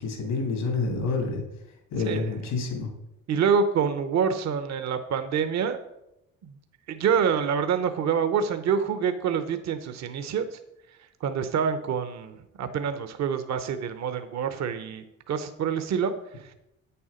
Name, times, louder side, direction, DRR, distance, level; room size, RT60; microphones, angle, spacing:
voice 1, 0.0-1.4 1.9-2.9, left 4 dB, 85° left, 2 dB, 2.7 m, -28 dB
voice 2, 3.3-5.8 6.4-6.5 6.9-10.6 11.2-16.1, right 7 dB, 65° right, 9 dB, 0.9 m, -26 dB
8.6 x 7.1 x 5.1 m, 0.88 s
cardioid pair, 90°, 30 cm